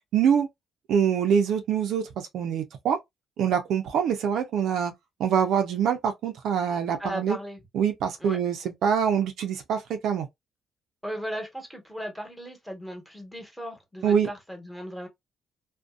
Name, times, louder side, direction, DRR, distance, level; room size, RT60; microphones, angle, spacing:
voice 1, 0.1-0.5 0.9-3.0 3.4-4.9 5.2-7.4 7.7-10.3 14.0-14.3, right 8 dB, 75° right, 0.5 m, -24 dB
voice 2, 7.0-7.6 8.2-8.4 11.0-15.1, equal, ahead, 1.1 m, -36 dB
2.6 x 2.2 x 2.3 m
cardioid pair, 90°, 0 cm